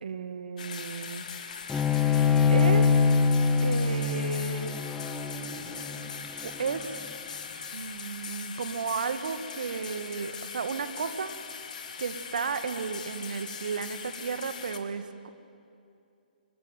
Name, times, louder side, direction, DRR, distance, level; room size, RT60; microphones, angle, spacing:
voice 1, 0.0-1.5 2.5-3.0 3.6-4.9 6.4-7.0 7.7-11.3 12.0-15.3, right 5 dB, 60° right, 10 dB, 1.8 m, -33 dB
sound 1, 0.6-14.8, left 6 dB, 50° left, 2.3 m, -41 dB
Bowed string instrument, 1.7-7.0, left 5 dB, 5° left, 1.3 m, -24 dB
24.5 x 17.5 x 9.4 m, 2.6 s
figure-of-eight pair, 130°, 5 cm